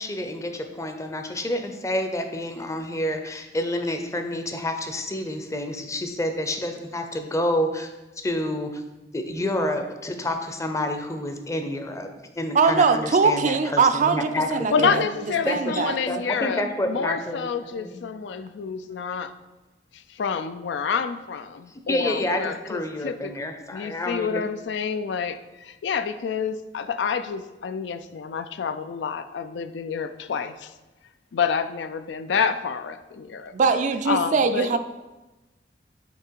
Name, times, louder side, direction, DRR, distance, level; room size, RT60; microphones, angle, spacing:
voice 1, 0.0-7.9 8.2-8.8 9.1-12.1 12.4-15.0 15.5-18.0 21.9-24.5, left 1 dB, 15° left, 5 dB, 0.6 m, -29 dB
voice 2, 12.5-15.0 15.4-16.0 33.5-34.8, right 5 dB, 45° right, 9 dB, 0.4 m, -21 dB
voice 3, 14.7-19.3 19.9-23.3 23.7-30.7 31.3-33.6 34.1-34.8, left 6 dB, 75° left, 10 dB, 0.4 m, -28 dB
8.5 x 3.3 x 4.5 m, 1.1 s
head